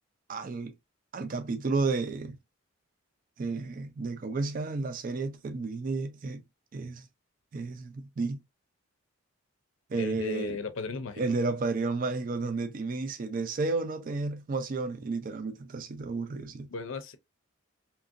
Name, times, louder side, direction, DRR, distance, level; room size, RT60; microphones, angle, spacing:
voice 1, 0.3-0.7 1.1-2.4 3.4-6.4 6.7-7.1 7.5-8.4 9.9-10.6 11.2-16.7, right 3 dB, 40° right, 0.3 m, -32 dB
voice 2, 9.9-11.2 16.7-17.2, left 4 dB, 65° left, 0.5 m, -36 dB
2.8 x 2.6 x 2.4 m
head